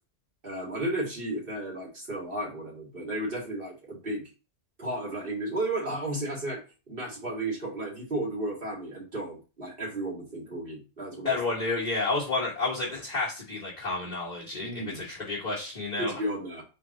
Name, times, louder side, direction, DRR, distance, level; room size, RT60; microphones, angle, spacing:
voice 1, 0.4-4.3 4.8-6.6 6.9-11.4 14.6-15.1 16.0-16.6, right 1 dB, 45° right, -5 dB, 2.2 m, -33 dB
voice 2, 11.2-14.7 14.9-16.1, left 3 dB, 35° left, -5 dB, 1.1 m, -30 dB
3.9 x 3.2 x 3.7 m, 0.33 s
omnidirectional pair, 1.3 m